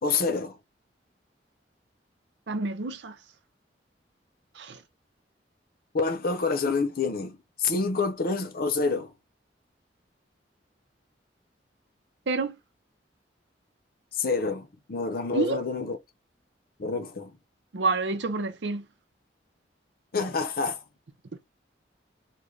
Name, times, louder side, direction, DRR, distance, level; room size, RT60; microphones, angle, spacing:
voice 1, 0.0-0.6 5.9-9.1 14.1-16.0 16.8-17.4 20.1-20.8, left 4 dB, 55° left, 0.6 m, -27 dB
voice 2, 2.5-3.2 4.6-4.8 12.3-12.6 15.3-15.6 17.7-18.9, right 3 dB, 75° right, 0.6 m, -28 dB
3.2 x 2.2 x 3.7 m
head